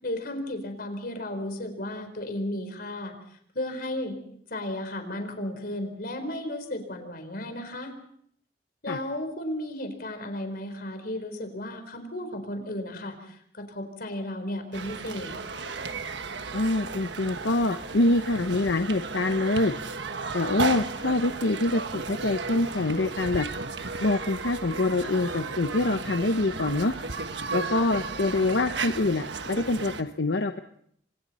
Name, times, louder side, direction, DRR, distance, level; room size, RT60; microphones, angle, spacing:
voice 1, 0.0-3.1 3.5-4.2 4.5-7.9 8.8-15.3, left 1 dB, 60° left, 7 dB, 4.3 m, -34 dB
sound 1, 14.7-30.0, right 4 dB, 85° right, 1.3 m, -34 dB
voice 2, 16.5-19.7 20.3-23.5 24.0-26.9 27.5-30.6, left 2 dB, 80° left, 7 dB, 0.9 m, -25 dB
28.5 x 25.0 x 4.3 m, 0.67 s
head